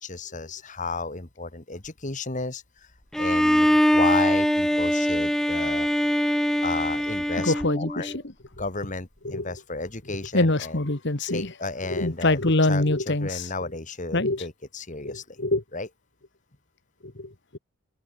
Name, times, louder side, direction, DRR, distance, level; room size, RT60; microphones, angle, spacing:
voice 1, 0.0-2.9 3.2-8.1 8.6-10.8 11.3-12.4 12.7-15.4 15.7-15.9, left 3 dB, 35° left, 1.8 m, -33 dB
Bowed string instrument, 3.1-8.2, equal, ahead, 0.5 m, -23 dB
voice 2, 7.4-8.2 9.2-9.5 10.3-11.5 11.9-13.5 14.1-14.4 15.0-15.6 17.0-17.6, left 2 dB, 50° left, 1.7 m, -25 dB
head